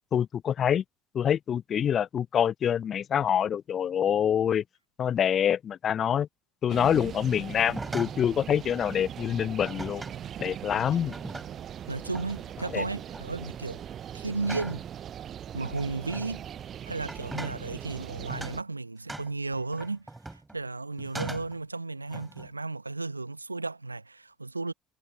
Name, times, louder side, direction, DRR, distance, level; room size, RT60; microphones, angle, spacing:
voice 1, 0.1-0.8 1.1-4.6 5.0-6.3 6.6-10.0 10.4-11.1 12.7-12.8, left 9 dB, 40° left, 0.5 m, -26 dB
sound 1, 6.7-18.6, right 9 dB, 45° right, 0.6 m, -40 dB
sound 2, 7.6-8.3 9.6-10.2 10.9-11.7 12.1-12.5 12.9-13.3 14.4-14.9 15.6-16.3 17.0-17.6 18.3-18.6 19.1-20.6 21.0-21.6 22.1-22.5, right 2 dB, 15° right, 3.5 m, -40 dB
voice 2, 11.9-13.8 14.1-14.8 15.5-16.4 16.8-20.1 20.3-24.7, right 3 dB, 90° right, 1.2 m, -34 dB
figure-of-eight pair, 60°, 0 cm